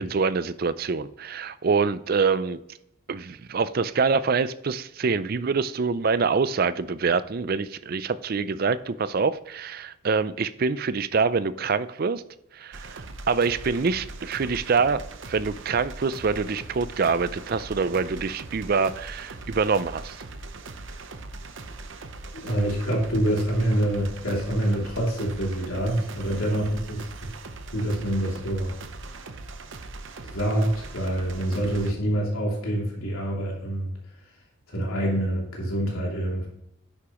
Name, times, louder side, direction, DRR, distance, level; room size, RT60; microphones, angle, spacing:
voice 1, 0.0-2.6 3.1-12.2 12.6-13.0 13.3-20.2, right 5 dB, 45° right, 14 dB, 0.4 m, -25 dB
sound 1, 12.7-31.9, right 3 dB, 60° right, 0.8 m, -40 dB
voice 2, 22.3-27.3 27.7-28.7 30.2-33.9 34.7-36.5, right 1 dB, 80° left, -3 dB, 2.8 m, -26 dB
9.9 x 8.3 x 3.0 m, 0.80 s
head